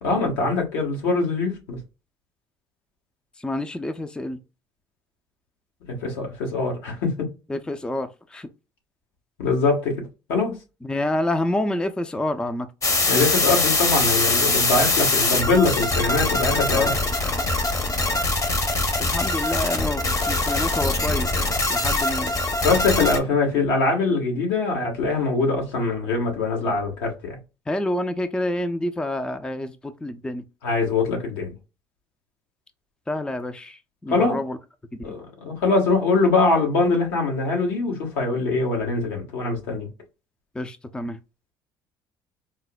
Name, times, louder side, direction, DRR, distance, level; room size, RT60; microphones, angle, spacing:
voice 1, 0.0-1.8 5.9-7.3 9.4-9.9 10.3-10.6 13.0-17.0 22.6-27.4 30.6-31.5 34.1-34.4 35.0-39.9, left 3 dB, 75° left, 1.2 m, -23 dB
voice 2, 3.4-4.4 7.5-8.5 10.8-12.7 16.7-16.9 19.0-21.3 21.7-22.3 27.7-30.4 33.1-34.6 35.1-35.2 40.6-41.2, left 1 dB, 10° left, 0.4 m, -28 dB
sound 1, 12.8-23.2, left 2 dB, 30° left, 0.8 m, -23 dB
4.1 x 2.0 x 2.2 m
hypercardioid pair, 65°, 11 cm